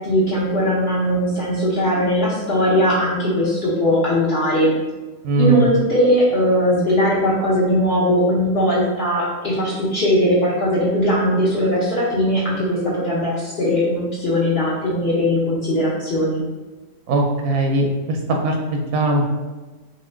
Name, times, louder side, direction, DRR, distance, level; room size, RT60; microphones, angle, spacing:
voice 1, 0.0-4.7 5.4-16.4, equal, 50° left, -7 dB, 1.0 m, -19 dB
voice 2, 5.2-5.7 17.1-19.3, right 2 dB, 85° right, 2 dB, 1.1 m, -20 dB
3.0 x 2.6 x 4.3 m, 1.2 s
omnidirectional pair, 1.5 m